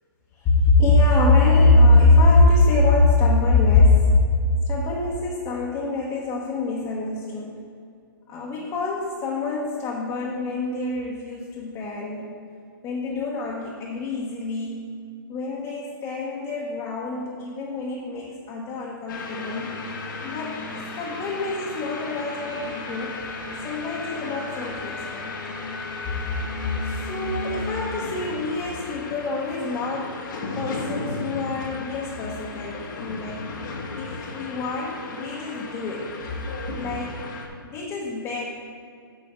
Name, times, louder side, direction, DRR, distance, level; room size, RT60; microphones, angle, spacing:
voice 1, 0.4-4.1 4.7-7.5 8.3-12.3 12.8-14.9 15.3-19.7 20.2-20.6 20.9-23.2 23.6-25.2 26.8-33.4 34.0-36.1 36.8-37.3 37.6-38.4, left 2 dB, 25° left, -5 dB, 1.2 m, -23 dB
sound 1, 19.1-37.5, left 3 dB, 55° left, 1.3 m, -34 dB
9.6 x 6.5 x 3.7 m, 2.3 s
hypercardioid pair, 140°, 12 cm